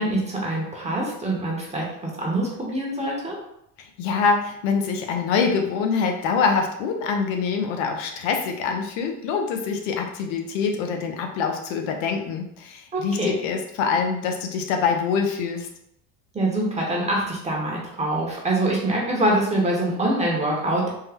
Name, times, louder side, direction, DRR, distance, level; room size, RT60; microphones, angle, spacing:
voice 1, 0.0-3.4 12.9-13.3 16.3-20.9, right 1 dB, 15° right, -3 dB, 0.8 m, -24 dB
voice 2, 3.8-15.7, left 5 dB, 85° left, 4 dB, 0.7 m, -25 dB
3.6 x 2.1 x 3.3 m, 0.75 s
supercardioid pair, 110°, 37 cm